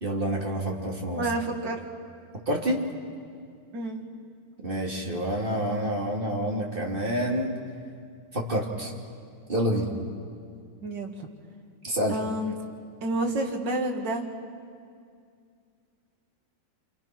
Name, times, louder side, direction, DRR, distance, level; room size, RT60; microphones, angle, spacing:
voice 1, 0.0-1.3 2.5-2.8 4.6-7.5 8.3-8.9 9.5-9.9 11.8-12.2, equal, 30° right, -1 dB, 2.9 m, -28 dB
voice 2, 1.1-1.8 3.7-4.1 10.8-11.3 12.1-12.5 13.0-14.2, right 1 dB, 75° right, 2 dB, 2.7 m, -29 dB
28.5 x 25.0 x 6.0 m, 2.3 s
omnidirectional pair, 1.9 m